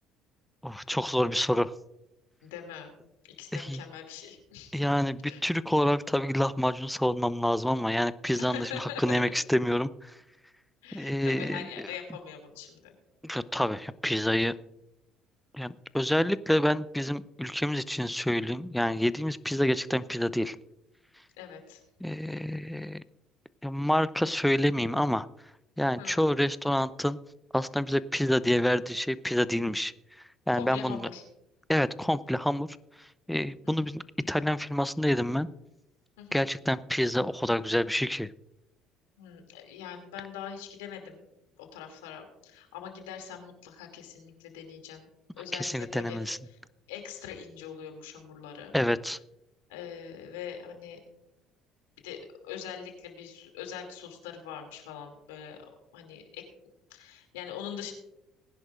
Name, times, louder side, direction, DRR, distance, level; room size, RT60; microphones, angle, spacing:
voice 1, 0.6-1.7 3.5-3.8 4.7-10.1 10.9-11.9 13.2-14.5 15.5-20.6 22.0-23.0 23.6-25.3 25.8-27.2 27.5-29.9 30.5-31.1 31.7-32.7 33.3-35.5 36.3-38.3 45.5-46.4 48.7-49.2, left 1 dB, 5° left, 16 dB, 0.6 m, -28 dB
voice 2, 2.4-2.9 3.4-5.0 5.2-5.4 8.3-9.2 10.8-12.9 21.4-21.8 26.0-26.2 30.6-31.2 33.6-33.7 36.2-36.5 39.2-41.2 41.6-45.1 45.4-46.2 46.5-46.6 46.9-48.7 49.7-51.0 52.0-55.6 55.9-56.4 56.9-57.9, left 8 dB, 90° left, 4 dB, 2.6 m, -42 dB
20.0 x 10.5 x 2.5 m, 0.87 s
hypercardioid pair, 70°, 0 cm